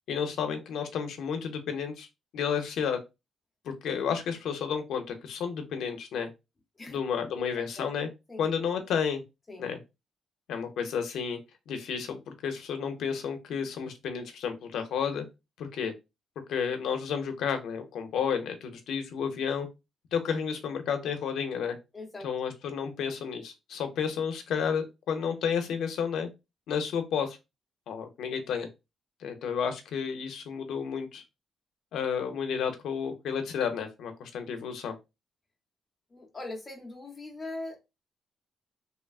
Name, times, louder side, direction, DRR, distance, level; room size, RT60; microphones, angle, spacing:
voice 1, 0.1-2.1 2.3-3.0 3.6-6.3 6.9-8.1 8.4-9.2 9.6-9.8 10.5-11.4 11.7-15.2 15.6-15.9 16.5-19.7 20.1-21.8 22.2-26.3 26.7-27.4 27.9-28.7 29.2-31.2 31.9-34.9, left 7 dB, 80° left, 0.6 m, -31 dB
voice 2, 6.8-7.5 7.8-7.9 8.3-8.4 9.5-9.7 21.9-22.3 36.1-37.8, left 2 dB, 15° left, 0.8 m, -41 dB
3.1 x 2.3 x 2.3 m
cardioid pair, 160°, 0 cm